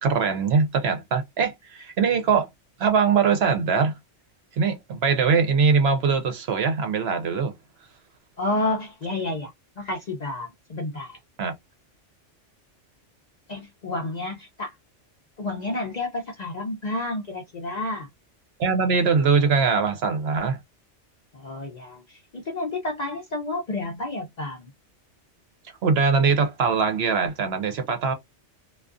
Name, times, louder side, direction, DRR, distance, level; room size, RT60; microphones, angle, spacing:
voice 1, 0.0-2.5 2.8-3.9 4.6-7.5 11.4-11.5 18.6-20.6 25.8-28.1, right 5 dB, 65° right, 0.8 m, -22 dB
voice 2, 8.4-11.2 13.5-14.7 15.4-18.1 21.3-24.7, left 2 dB, 50° left, 0.5 m, -30 dB
2.3 x 2.3 x 2.4 m
omnidirectional pair, 1.2 m